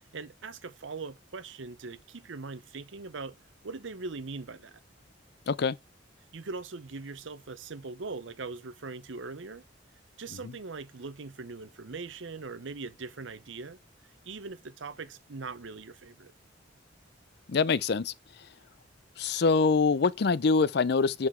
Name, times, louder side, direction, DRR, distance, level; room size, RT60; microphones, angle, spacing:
voice 1, 0.1-3.3 3.6-4.8 6.3-9.6 10.2-13.8 14.2-16.3, right 4 dB, 75° right, 0.7 m, -41 dB
voice 2, 5.5-5.8 17.5-18.1 19.2-21.3, left 4 dB, 60° left, 0.5 m, -24 dB
7.8 x 5.8 x 4.4 m
head